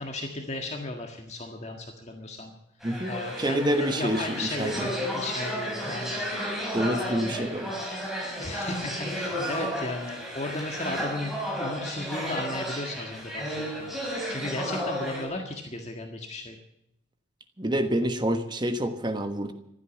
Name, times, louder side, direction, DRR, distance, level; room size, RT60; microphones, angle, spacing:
voice 1, 0.0-2.5 3.1-6.6 6.9-7.4 8.4-11.3 11.6-16.6, left 2 dB, 35° left, 3 dB, 1.7 m, -35 dB
sound 1, 2.8-15.2, equal, ahead, 5.3 m, -33 dB
voice 2, 2.8-4.9 6.6-7.7 17.6-19.5, right 1 dB, 25° right, 8 dB, 1.2 m, -28 dB
15.5 x 12.5 x 7.1 m, 0.79 s
head